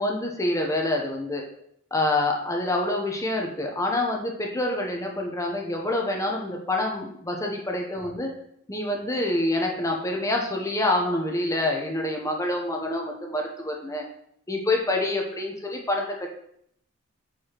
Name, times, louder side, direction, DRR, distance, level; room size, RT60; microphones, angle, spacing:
voice 1, 0.0-1.4 1.9-8.3 8.7-14.0 14.5-16.3, left 1 dB, 15° left, 1 dB, 0.7 m, -27 dB
6.8 x 4.7 x 2.9 m, 0.70 s
head